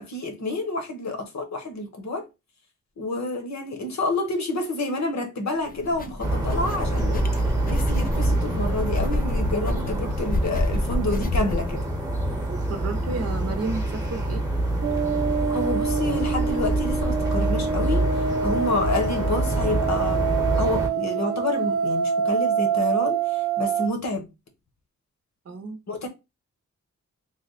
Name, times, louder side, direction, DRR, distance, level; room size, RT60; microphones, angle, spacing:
voice 1, 0.0-2.3 3.0-7.3 7.7-11.8 15.5-20.3 20.6-24.2 25.9-26.1, left 2 dB, 65° left, 1.1 m, -29 dB
sound 1, 5.7-11.8, left 1 dB, 30° left, 0.5 m, -29 dB
sound 2, 6.2-20.9, right 1 dB, 10° right, 0.9 m, -26 dB
voice 2, 12.5-14.4 25.5-25.8, right 3 dB, 55° right, 0.7 m, -32 dB
sound 3, 14.8-23.9, right 6 dB, 90° right, 0.7 m, -26 dB
3.4 x 2.1 x 3.9 m
wide cardioid pair, 120°, 30 cm